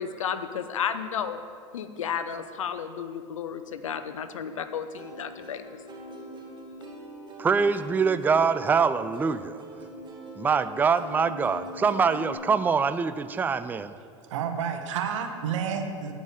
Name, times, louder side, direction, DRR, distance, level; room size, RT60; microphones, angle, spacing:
voice 1, 0.0-1.4 1.7-5.8, left 7 dB, 85° left, 10 dB, 0.6 m, -32 dB
Plucked string instrument, 5.0-12.3, right 1 dB, 30° right, 2.0 m, -42 dB
voice 2, 7.4-9.6 10.4-13.9, right 5 dB, 10° right, 12 dB, 0.3 m, -24 dB
voice 3, 14.3-16.1, right 7 dB, 75° right, 5 dB, 1.2 m, -30 dB
9.4 x 5.3 x 7.8 m, 2.3 s
hypercardioid pair, 90°, 16 cm